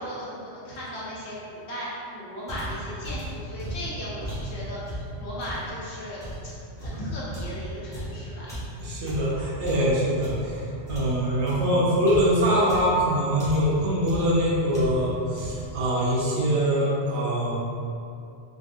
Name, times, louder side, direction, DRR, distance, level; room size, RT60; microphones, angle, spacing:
voice 1, 0.0-6.5 6.8-8.5, equal, 75° left, -8 dB, 1.1 m, -36 dB
sound 1, 2.5-5.7 6.2-10.6 10.8-13.1 13.4-13.8 14.1-14.4 14.7-15.1 15.4-15.8, right 1 dB, 5° left, 0.6 m, -36 dB
voice 2, 8.8-17.5, equal, 80° right, -6 dB, 1.0 m, -23 dB
3.6 x 2.4 x 2.5 m, 2.6 s
omnidirectional pair, 1.2 m